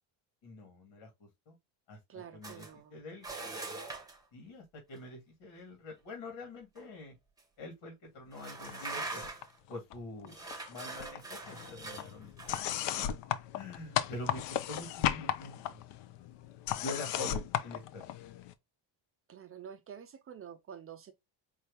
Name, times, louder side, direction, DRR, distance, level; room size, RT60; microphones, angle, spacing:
voice 1, 0.4-1.5 1.9-2.0 2.3-3.3 4.3-7.1 7.6-9.2 9.7-10.4 10.7-13.1 13.5-15.8 16.8-18.0, left 2 dB, 80° left, 2.1 m, -45 dB
voice 2, 2.1-3.0 19.3-21.1, right 8 dB, 30° right, 0.4 m, -48 dB
sound 1, 2.4-2.7 3.2-4.2 6.8-6.9 7.4-7.5 8.3-9.6 10.3-12.6, right 3 dB, 10° right, 0.9 m, -42 dB
sound 2, 8.6-9.4 9.7-10.7 11.0-18.5, left 11 dB, 65° left, 0.6 m, -36 dB
4.6 x 2.8 x 3.3 m
cardioid pair, 130°, 47 cm